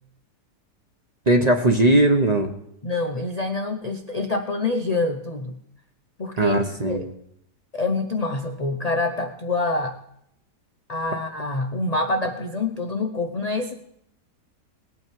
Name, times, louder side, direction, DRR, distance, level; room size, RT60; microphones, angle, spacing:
voice 1, 1.3-2.5 6.4-7.0, right 1 dB, 30° right, 5 dB, 0.8 m, -18 dB
voice 2, 2.8-5.6 6.2-7.1 7.7-10.0 10.9-13.7, left 3 dB, 55° left, 6 dB, 0.4 m, -26 dB
19.5 x 8.8 x 4.6 m, 0.76 s
omnidirectional pair, 1.8 m